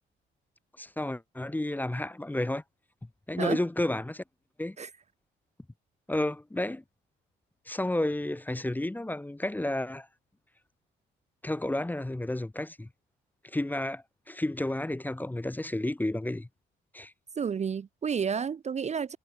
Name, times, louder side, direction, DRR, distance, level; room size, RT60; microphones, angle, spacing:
voice 1, 0.8-2.6 3.3-4.2 4.6-4.8 6.1-6.8 7.7-10.1 11.4-12.9 13.4-16.5 16.9-17.1, left 1 dB, 10° left, 0.8 m, -31 dB
voice 2, 17.4-19.2, right 6 dB, 35° right, 0.6 m, -31 dB
cardioid pair, 90°, 20 cm